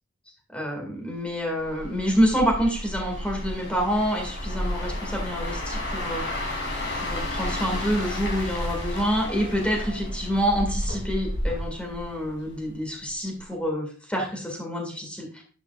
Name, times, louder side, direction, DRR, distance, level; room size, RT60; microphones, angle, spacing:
voice 1, 0.5-6.2 7.0-15.4, equal, 5° left, 0 dB, 2.0 m, -27 dB
sound 1, 1.6-12.7 13.1-13.3, left 1 dB, 55° left, 2.9 m, -32 dB
10.5 x 7.0 x 2.4 m, 0.43 s
head